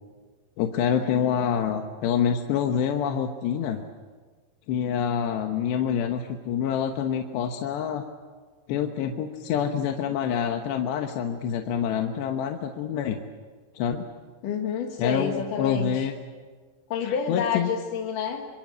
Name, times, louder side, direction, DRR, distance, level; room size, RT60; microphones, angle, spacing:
voice 1, 0.6-3.8 4.7-8.0 8.7-13.2 13.7-14.0 15.0-16.1 17.0-17.7, left 8 dB, 75° left, 4 dB, 3.2 m, -26 dB
voice 2, 14.4-16.1 16.9-18.5, left 7 dB, 55° left, 1 dB, 2.7 m, -29 dB
27.5 x 25.5 x 7.9 m, 1.5 s
omnidirectional pair, 5.3 m